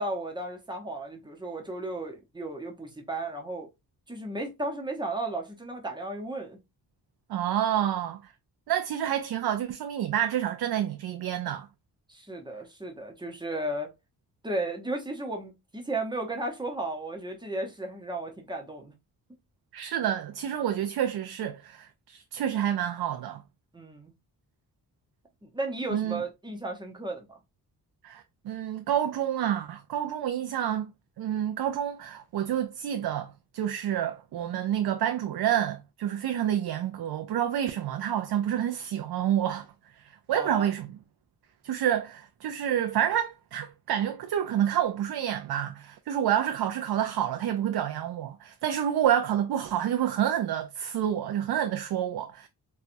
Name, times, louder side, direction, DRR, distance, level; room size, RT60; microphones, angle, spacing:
voice 1, 0.0-3.7 4.1-6.6 12.1-13.9 14.4-18.9 23.7-24.1 25.4-27.4 40.3-40.7, right 2 dB, 10° right, 0.7 m, -34 dB
voice 2, 7.3-8.2 8.7-11.7 19.7-23.4 25.9-26.2 28.0-30.9 31.2-39.7 40.0-40.9 41.6-52.5, right 10 dB, 75° right, 0.5 m, -28 dB
4.3 x 2.3 x 2.5 m
wide cardioid pair, 165°, 38 cm